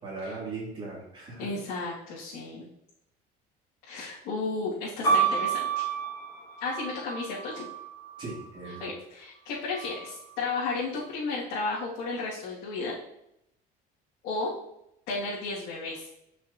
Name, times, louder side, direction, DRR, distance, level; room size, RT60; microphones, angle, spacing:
voice 1, 0.0-1.5 8.2-8.9, right 3 dB, 30° right, -5 dB, 2.9 m, -38 dB
voice 2, 1.4-2.7 3.9-5.7 6.6-7.7 8.6-13.0 14.2-14.5 15.1-16.1, left 3 dB, 85° left, -8 dB, 2.4 m, -33 dB
sound 1, 5.0-8.9 9.7-10.4, right 6 dB, 25° left, 3.1 m, -30 dB
9.7 x 6.0 x 2.9 m, 0.80 s
cardioid pair, 170°, 17 cm